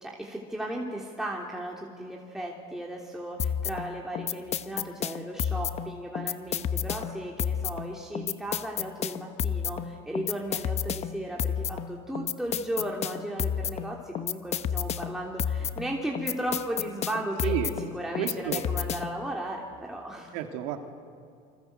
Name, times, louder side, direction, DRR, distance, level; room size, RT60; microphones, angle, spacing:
voice 1, 0.0-17.5 17.9-20.4, right 1 dB, 5° right, -2 dB, 3.2 m, -35 dB
sound 1, 3.4-19.3, left 8 dB, 40° left, 1.0 m, -31 dB
voice 2, 17.4-17.7 18.2-18.6 20.3-20.8, right 11 dB, 85° right, 5 dB, 2.6 m, -31 dB
28.5 x 26.0 x 8.0 m, 2.4 s
cardioid pair, 120°, 17 cm